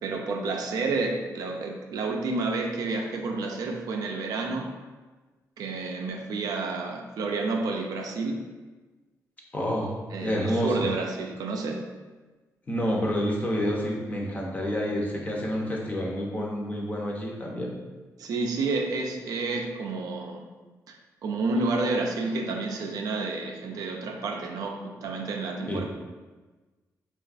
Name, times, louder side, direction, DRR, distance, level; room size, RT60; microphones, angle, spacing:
voice 1, 0.0-4.7 5.6-8.4 10.1-11.8 18.2-20.5 20.9-21.0 21.2-25.8, right 3 dB, 80° right, 2 dB, 0.3 m, -30 dB
voice 2, 9.5-9.9 10.2-10.9 12.7-17.8 25.7-25.8, equal, 25° left, -2 dB, 0.5 m, -28 dB
3.2 x 2.3 x 2.4 m, 1.3 s
wide cardioid pair, 120°, 6 cm